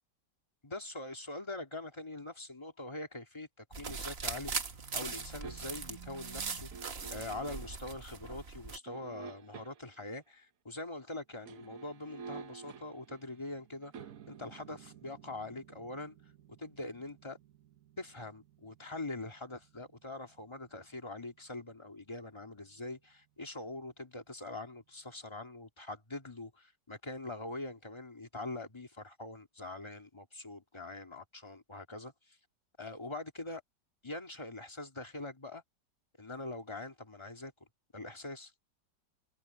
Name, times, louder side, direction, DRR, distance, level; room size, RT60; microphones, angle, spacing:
voice 1, 0.6-4.5 4.9-6.7 7.1-16.2 16.6-17.4 18.0-32.4 32.8-33.6 34.0-35.6 36.2-37.5 37.9-38.5, left 2 dB, 15° left, 2.3 m, -43 dB
sound 1, 3.7-8.8, right 5 dB, 40° right, 1.4 m, -40 dB
sound 2, 5.4-6.0 6.7-7.9 8.9-10.0 11.3-22.2 22.5-22.7, right 6 dB, 55° right, 1.2 m, -52 dB
omnidirectional pair, 1.9 m